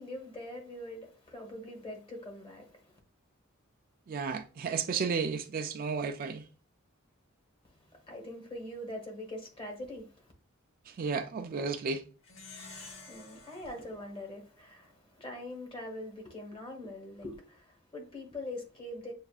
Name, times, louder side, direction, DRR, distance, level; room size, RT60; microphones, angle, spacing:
voice 1, 0.0-3.0 7.6-10.3 12.8-19.1, left 1 dB, 25° left, 1.2 m, -43 dB
voice 2, 4.1-6.5 10.9-12.0, right 5 dB, 45° right, 0.3 m, -33 dB
Plucked string instrument, 12.2-15.0, left 3 dB, 65° left, 1.0 m, -51 dB
6.9 x 2.5 x 2.4 m
head